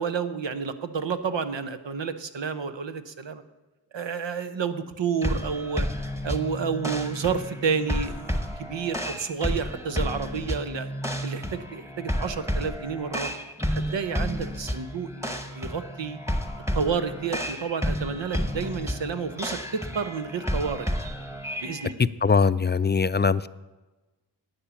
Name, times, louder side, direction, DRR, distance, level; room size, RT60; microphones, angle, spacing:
voice 1, 0.0-3.4 3.9-5.9 6.2-10.9 11.2-13.4 13.7-16.2 16.7-20.9 21.6-22.1, right 6 dB, 90° right, 10 dB, 0.9 m, -30 dB
sound 1, 5.2-21.9, equal, 5° right, 1.2 m, -31 dB
voice 2, 22.0-23.5, left 5 dB, 25° left, 15 dB, 0.4 m, -21 dB
12.0 x 9.0 x 7.1 m, 1.1 s
wide cardioid pair, 55°, 43 cm